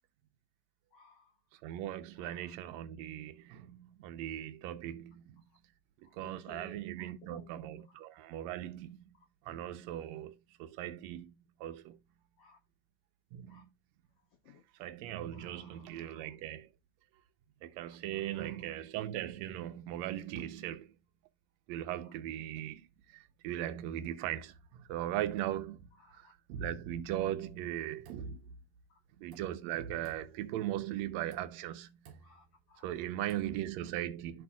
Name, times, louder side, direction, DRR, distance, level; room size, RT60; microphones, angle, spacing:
voice 1, 0.9-1.4 2.2-2.5 6.0-7.5 7.9-8.0 12.4-12.6 13.5-13.6 14.4-14.6 15.3-16.3 17.8-18.7 22.0-22.1 26.0-26.3 28.9-29.0 32.2-33.0, left 4 dB, 70° left, 1.5 m, -59 dB
voice 2, 1.6-5.4 6.1-9.1 9.5-11.3 11.6-12.0 13.3-13.7 14.8-16.7 17.6-20.9 21.7-22.9 23.1-25.9 26.1-28.4 29.2-31.9 32.8-34.4, right 12 dB, 80° right, 1.6 m, -39 dB
sound 1, 27.7-28.8 29.2-29.8 30.0-30.7 31.2-31.8 32.0-32.6 33.2-33.7, right 6 dB, 65° right, 1.9 m, -57 dB
12.0 x 4.3 x 2.3 m
omnidirectional pair, 4.0 m